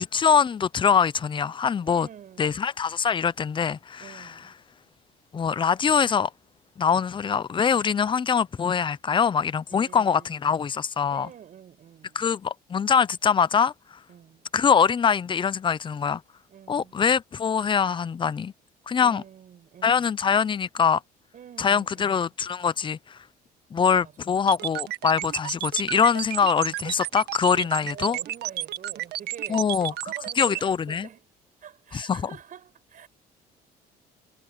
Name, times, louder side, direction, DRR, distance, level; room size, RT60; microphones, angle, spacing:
voice 1, 0.0-2.1 2.4-4.3 5.3-6.3 6.8-11.3 12.1-13.7 14.5-16.2 16.7-18.5 18.9-19.2 19.8-21.0 21.6-23.2 23.7-28.2 29.5-29.9 30.4-31.1 31.9-32.3, left 6 dB, 30° left, 0.7 m, -23 dB
voice 2, 1.8-2.7 4.0-4.5 9.7-10.5 11.1-12.3 14.1-14.5 16.5-17.0 19.0-20.1 21.3-22.2 24.0-24.1 27.5-31.3 31.6-33.1, right 9 dB, 50° right, 6.1 m, -46 dB
sound 1, 24.5-30.6, right 13 dB, 75° right, 1.4 m, -31 dB
cardioid pair, 110°, 17 cm